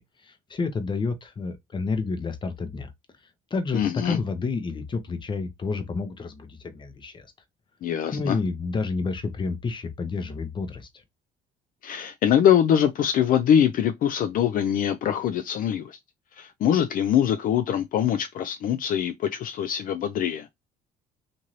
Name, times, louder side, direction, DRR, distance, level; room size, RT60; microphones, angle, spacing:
voice 1, 0.0-2.9 3.5-7.3 8.1-10.9, left 4 dB, 30° left, 0.7 m, -30 dB
voice 2, 3.7-4.2 7.8-8.4 11.8-16.0 16.3-20.5, left 9 dB, 55° left, 0.4 m, -23 dB
2.7 x 2.6 x 3.0 m
cardioid pair, 110°, 17 cm